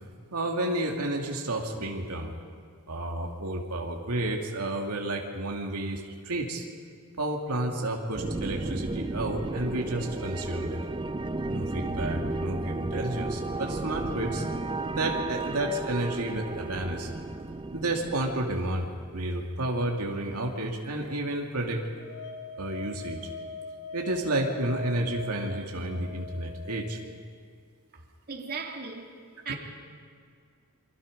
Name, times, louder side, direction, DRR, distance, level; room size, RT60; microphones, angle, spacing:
voice 1, 0.3-2.3 2.9-6.7 7.2-10.8 11.5-14.4 14.9-17.1 17.7-18.9 19.1-21.8 22.6-23.3 23.9-27.0 29.5-29.6, right 1 dB, 90° right, 1 dB, 2.6 m, -31 dB
sound 1, 8.1-19.5, right 2 dB, 20° right, 0.6 m, -34 dB
sound 2, 22.0-27.1, left 4 dB, 80° left, 3.0 m, -41 dB
voice 2, 27.9-29.2 29.4-29.6, right 5 dB, 45° right, 1 dB, 2.7 m, -37 dB
28.5 x 24.0 x 5.4 m, 2.2 s
head